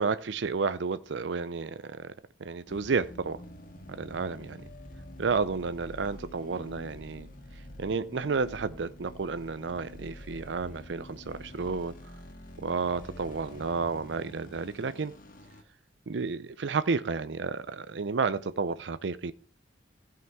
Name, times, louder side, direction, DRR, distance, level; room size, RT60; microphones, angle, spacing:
voice 1, 0.0-2.1 2.4-3.4 4.0-4.6 5.2-7.3 7.8-11.9 12.6-15.2 16.1-19.3, right 4 dB, 75° right, 0.5 m, -31 dB
sound 1, 2.7-15.6, left 1 dB, 50° left, 2.0 m, -47 dB
15.5 x 5.8 x 4.6 m
head